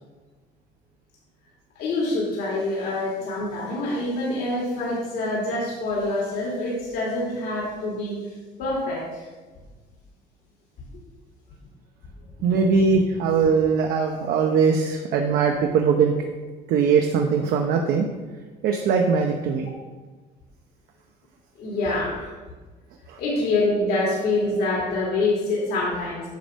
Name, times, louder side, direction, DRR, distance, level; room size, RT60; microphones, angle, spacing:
voice 1, 1.8-8.3 8.6-9.3 21.6-22.3 23.2-26.2, left 2 dB, 75° left, -5 dB, 2.4 m, -26 dB
voice 2, 12.4-16.2 16.7-18.1 18.6-19.7 23.1-23.2, right 5 dB, 70° right, 3 dB, 0.7 m, -21 dB
9.3 x 6.1 x 3.5 m, 1.3 s
cardioid pair, 135°, 16 cm